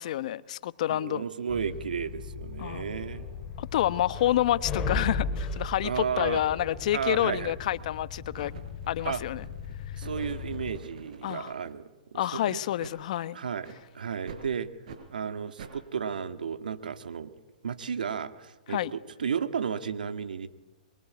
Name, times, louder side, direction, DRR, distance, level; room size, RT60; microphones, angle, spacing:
voice 1, 0.0-1.2 2.6-2.8 3.6-8.5 8.9-9.4 11.2-11.5 12.1-13.4 18.7-18.9, left 12 dB, 55° left, 16 dB, 1.2 m, -28 dB
voice 2, 0.9-3.2 5.8-6.4 6.9-7.5 9.0-9.2 9.9-12.6 13.3-13.7 13.9-14.7 15.1-17.3 17.6-20.5, right 7 dB, 75° right, 10 dB, 2.0 m, -33 dB
sound 1, 1.5-10.8, left 4 dB, 20° left, 7.9 m, -37 dB
sound 2, 6.9-7.0 7.7-8.0 8.3-11.7 12.2-12.4 12.8-13.0 13.6-13.8 14.3-14.5 14.8-15.0 15.6-15.8, right 6 dB, 60° right, 5.0 m, -48 dB
24.0 x 23.5 x 9.6 m, 1.1 s
hypercardioid pair, 130°, 5 cm